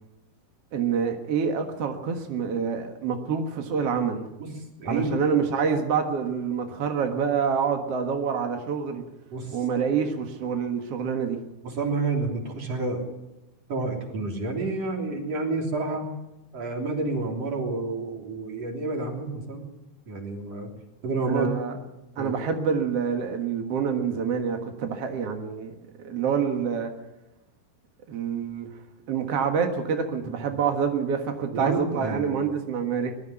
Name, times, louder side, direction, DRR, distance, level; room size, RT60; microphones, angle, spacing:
voice 1, 0.7-4.2 4.9-9.0 9.5-11.4 21.3-21.7 22.2-25.7 26.0-26.9 28.1-28.7 29.1-33.1, right 6 dB, 65° right, 4 dB, 1.5 m, -27 dB
voice 2, 4.8-5.2 5.6-5.8 9.3-9.6 11.6-13.0 13.7-16.1 16.5-19.7 20.1-20.7 21.0-21.5 22.2-22.4 30.4-30.5 31.5-32.4, right 3 dB, 35° right, 2 dB, 3.9 m, -29 dB
21.5 x 12.0 x 10.0 m, 0.96 s
omnidirectional pair, 5.3 m